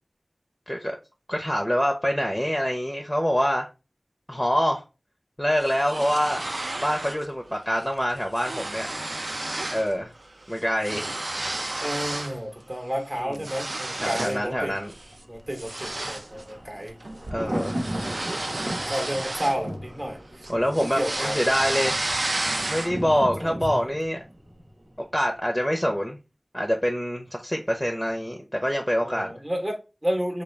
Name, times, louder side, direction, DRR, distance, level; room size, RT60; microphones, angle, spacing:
voice 1, 1.3-3.7 4.3-4.8 5.4-6.4 6.8-8.9 9.7-10.1 10.5-11.1 13.2-13.3 14.0-14.9 17.3-17.7 18.4-18.5 20.5-22.0 22.7-24.2 25.0-26.2 26.5-29.3, equal, 15° left, 0.5 m, -25 dB
sound 1, 5.6-7.3 7.6-7.8 8.1-9.9 10.2-12.4 12.8-14.5 14.9-15.1 15.5-20.1 20.4-23.1, right 2 dB, 60° right, 0.3 m, -32 dB
voice 2, 11.8-14.8 15.3-17.0 17.5-17.7 18.9-20.2 20.8-21.4 23.4-23.9 29.0-30.4, equal, 35° right, 0.8 m, -31 dB
Thunder, 14.4-25.3 25.6-25.7, equal, 90° right, 1.0 m, -37 dB
3.5 x 2.3 x 3.2 m
wide cardioid pair, 50°, 0 cm